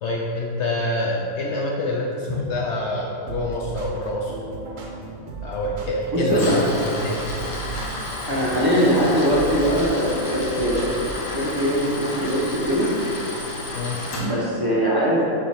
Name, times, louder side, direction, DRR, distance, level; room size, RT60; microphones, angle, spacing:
voice 1, 0.0-4.4 5.4-7.2 13.7-14.0, left 1 dB, 65° left, -2 dB, 0.8 m, -26 dB
sound 1, 3.3-11.2, right 4 dB, 70° right, 1.2 m, -36 dB
voice 2, 6.1-6.6 8.3-12.9 14.2-15.3, equal, 15° right, -8 dB, 1.2 m, -21 dB
Tools, 6.3-14.2, left 1 dB, 85° left, 1.6 m, -32 dB
7.0 x 3.8 x 4.9 m, 2.8 s
omnidirectional pair, 1.4 m